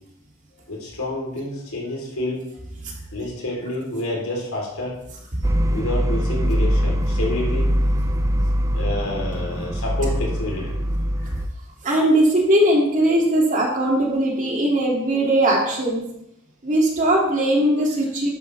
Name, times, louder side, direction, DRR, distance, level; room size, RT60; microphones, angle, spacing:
voice 1, 0.7-2.5 3.1-5.0 5.7-7.7 8.7-10.8 11.2-11.3, left 1 dB, 85° left, -2 dB, 3.5 m, -28 dB
sound 1, 5.4-11.5, equal, 15° right, 0.4 m, -22 dB
voice 2, 11.8-16.0 16.6-18.3, right 1 dB, 35° right, -2 dB, 2.4 m, -19 dB
11.5 x 9.7 x 3.3 m, 0.81 s
head